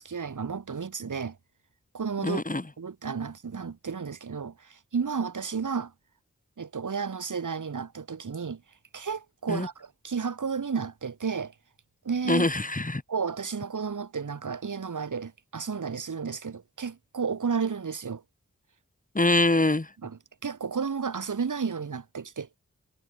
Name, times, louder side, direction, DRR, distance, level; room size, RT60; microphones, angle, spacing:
voice 1, 0.0-1.4 1.9-2.4 2.8-5.9 6.6-8.6 8.9-11.5 12.0-12.5 13.1-18.2 20.0-22.6, right 5 dB, 75° right, 1.4 m, -32 dB
voice 2, 2.2-2.6 9.5-9.7 12.3-13.0 19.1-19.9, left 2 dB, 25° left, 1.7 m, -24 dB
cardioid pair, 40°, 31 cm